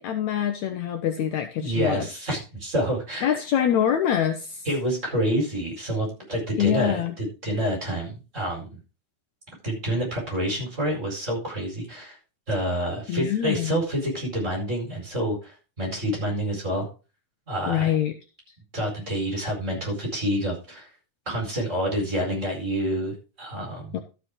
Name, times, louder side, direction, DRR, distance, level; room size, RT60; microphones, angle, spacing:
voice 1, 0.0-2.1 3.2-4.6 6.6-7.1 13.1-13.7 17.7-18.1 23.9-24.0, left 10 dB, 85° left, 7 dB, 1.6 m, -25 dB
voice 2, 1.6-3.4 4.6-8.8 9.6-12.2 12.5-16.9 17.5-17.9 18.7-20.9 21.3-24.0, equal, 20° right, 0 dB, 4.7 m, -28 dB
13.0 x 7.4 x 3.7 m, 0.32 s
omnidirectional pair, 4.4 m